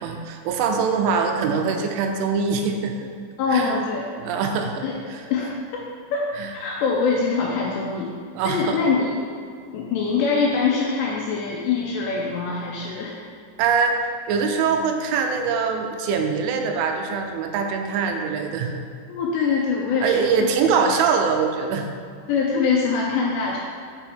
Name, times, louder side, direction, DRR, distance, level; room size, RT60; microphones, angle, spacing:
voice 1, 0.0-2.9 3.5-3.8 4.2-5.2 6.4-6.5 8.4-8.8 13.6-14.0 14.3-18.8 20.0-21.9, right 5 dB, 85° right, 4 dB, 3.1 m, -23 dB
voice 2, 3.4-4.0 4.8-5.0 5.3-5.8 6.1-6.2 6.5-8.1 8.4-9.2 9.7-13.2 19.1-20.5 21.0-21.1 22.3-23.6, left 5 dB, 85° left, -2 dB, 2.5 m, -23 dB
7.0 x 5.9 x 4.4 m, 2.2 s
omnidirectional pair, 5.6 m